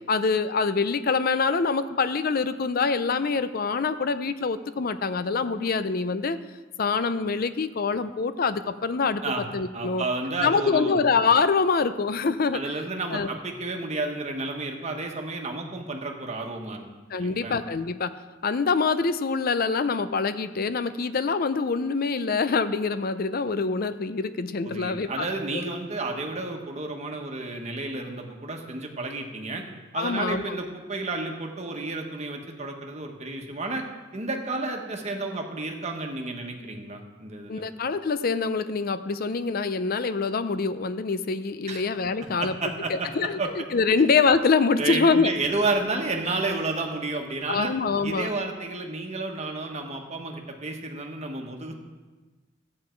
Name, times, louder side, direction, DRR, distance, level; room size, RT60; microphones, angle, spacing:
voice 1, 0.1-6.4 6.8-9.2 9.5-10.0 10.4-12.6 13.1-13.3 17.1-18.1 18.4-25.3 30.0-30.6 37.5-42.5 42.9-45.3 47.5-48.3, left 4 dB, 50° left, 12 dB, 0.5 m, -25 dB
voice 2, 9.7-11.0 12.5-16.8 17.2-17.5 24.6-29.6 29.9-33.9 34.1-37.6 41.7-41.8 42.4-43.5 44.8-47.7 48.0-51.8, right 3 dB, 35° right, 2 dB, 1.3 m, -31 dB
14.0 x 8.7 x 4.6 m, 1.3 s
head